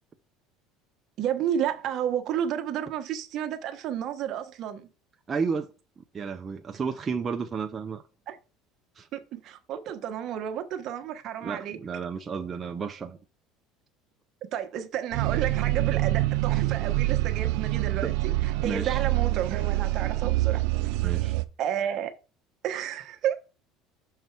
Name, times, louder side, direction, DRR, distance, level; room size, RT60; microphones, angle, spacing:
voice 1, 1.2-4.9 8.3-8.4 9.1-11.8 14.5-20.6 21.6-22.1 22.6-23.4, right 9 dB, 55° right, 1.2 m, -31 dB
voice 2, 5.3-8.0 9.0-9.1 11.4-13.2 18.0-18.1 18.6-19.0 21.0-21.4, right 5 dB, 30° right, 0.6 m, -32 dB
sound 1, 15.1-21.5, right 17 dB, 75° right, 0.5 m, -26 dB
6.6 x 4.6 x 4.6 m
supercardioid pair, 110°, 0 cm